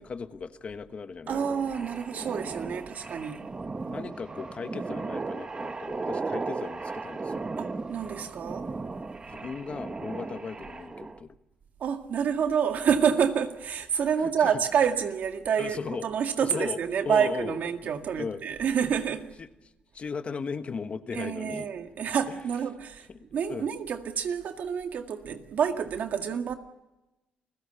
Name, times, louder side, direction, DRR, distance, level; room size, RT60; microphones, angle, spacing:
voice 1, 0.0-1.7 3.9-7.5 9.3-11.3 14.2-14.6 15.6-16.1 16.4-16.8 17.0-17.6 18.2-18.4 19.4-19.5 19.9-21.7 23.5-23.7, left 5 dB, 45° left, 1.2 m, -37 dB
sound 1, 1.3-11.2, right 3 dB, 30° right, 1.2 m, -36 dB
voice 2, 1.3-3.4 7.6-8.7 11.8-19.3 21.1-26.5, right 7 dB, 70° right, 1.9 m, -28 dB
29.5 x 16.0 x 7.0 m
cardioid pair, 90°, 3 cm